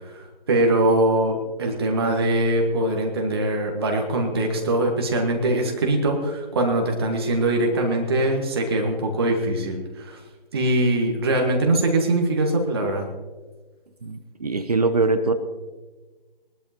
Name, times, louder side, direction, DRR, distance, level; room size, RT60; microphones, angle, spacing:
voice 1, 0.1-10.2 10.5-13.1, right 1 dB, 25° right, 2 dB, 1.5 m, -22 dB
voice 2, 14.0-15.3, right 3 dB, 40° right, 10 dB, 0.9 m, -22 dB
21.5 x 12.0 x 2.9 m, 1.3 s
figure-of-eight pair, 155°, 29 cm